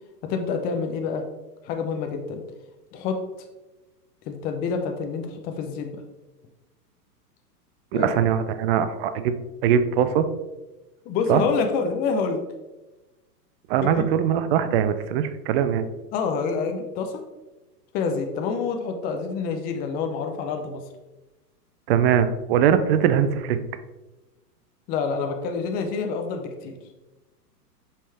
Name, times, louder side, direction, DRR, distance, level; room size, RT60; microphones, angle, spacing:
voice 1, 0.3-1.2 1.6-2.4 2.9-3.2 4.2-6.0 7.9-8.1 11.1-12.4 13.8-14.0 16.1-17.2 17.9-20.8 24.9-26.7, left 5 dB, 20° left, 5 dB, 0.5 m, -27 dB
voice 2, 7.9-9.3 9.6-10.3 11.3-11.4 13.7-15.9 21.9-23.6, right 9 dB, 40° right, 11 dB, 0.5 m, -21 dB
5.5 x 5.2 x 3.3 m, 1.1 s
hypercardioid pair, 125°, 49 cm